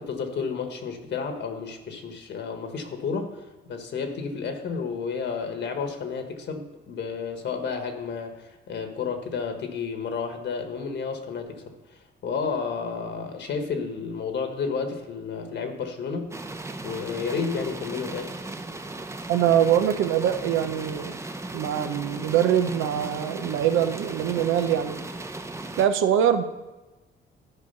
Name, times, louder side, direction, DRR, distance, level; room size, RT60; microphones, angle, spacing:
voice 1, 0.0-16.3 16.8-18.4, left 5 dB, 65° left, 5 dB, 1.4 m, -31 dB
sound 1, 16.3-25.9, right 2 dB, 15° right, 0.7 m, -37 dB
voice 2, 19.3-21.2 21.5-25.0 25.8-26.4, right 9 dB, 85° right, 8 dB, 0.8 m, -23 dB
12.0 x 4.9 x 5.5 m, 1.1 s
cardioid pair, 90°, 20 cm